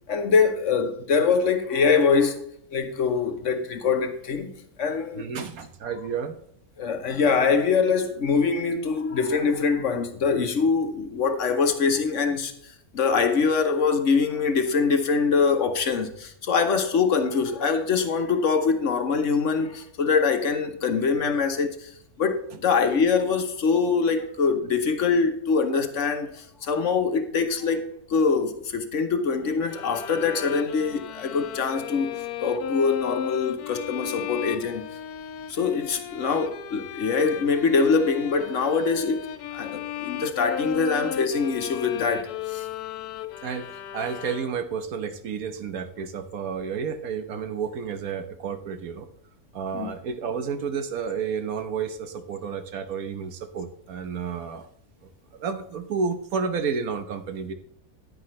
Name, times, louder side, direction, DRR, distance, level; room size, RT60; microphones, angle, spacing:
voice 1, 0.1-2.4 2.7-4.5 4.8-5.4 5.9-6.0 6.8-12.5 12.9-21.9 22.2-32.1 32.4-34.8 35.5-39.3 39.5-42.7 49.7-49.9, left 5 dB, 60° left, 1.2 m, -24 dB
voice 2, 5.2-6.3 43.4-49.1 49.5-54.7 55.3-57.5, right 6 dB, 75° right, 1.4 m, -31 dB
sound 1, 29.7-44.8, left 10 dB, 85° left, 1.2 m, -35 dB
9.9 x 9.7 x 3.2 m
omnidirectional pair, 1.6 m